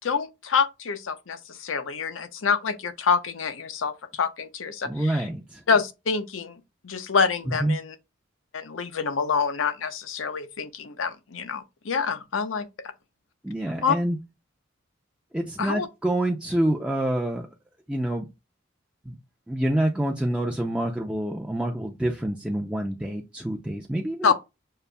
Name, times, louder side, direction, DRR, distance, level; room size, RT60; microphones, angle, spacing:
voice 1, 0.0-5.2 5.7-6.6 6.8-7.9 8.5-12.7 13.8-14.0 15.6-15.9 24.2-24.3, left 5 dB, 90° left, 0.6 m, -26 dB
voice 2, 4.8-5.6 7.5-7.8 13.4-14.2 15.3-17.5 17.9-18.3 19.1-19.2 19.5-24.3, right 1 dB, 5° right, 0.4 m, -27 dB
6.6 x 2.5 x 2.2 m
head